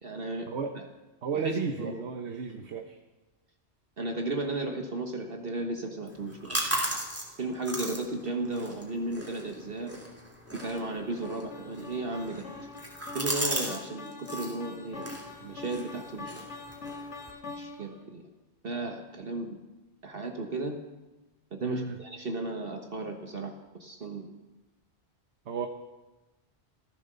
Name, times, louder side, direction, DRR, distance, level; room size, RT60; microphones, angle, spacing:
voice 1, 0.0-0.8 1.3-2.0 2.5-2.6 4.0-6.6 7.4-9.9 10.5-12.5 13.1-15.1 15.4-16.6 17.6-18.2 18.6-19.6 20.0-20.8 21.5-23.5 23.8-24.3, right 2 dB, 55° right, 4 dB, 1.5 m, -35 dB
voice 2, 1.2-3.0 21.6-21.9 25.5-25.7, right 5 dB, 75° right, 5 dB, 1.3 m, -33 dB
sound 1, 6.1-13.8 14.1-14.6 15.0-17.3, right 1 dB, 10° right, 3.0 m, -37 dB
sound 2, 10.6-18.0, left 3 dB, 85° left, 2.6 m, -44 dB
14.5 x 14.5 x 6.8 m, 1.1 s
omnidirectional pair, 1.1 m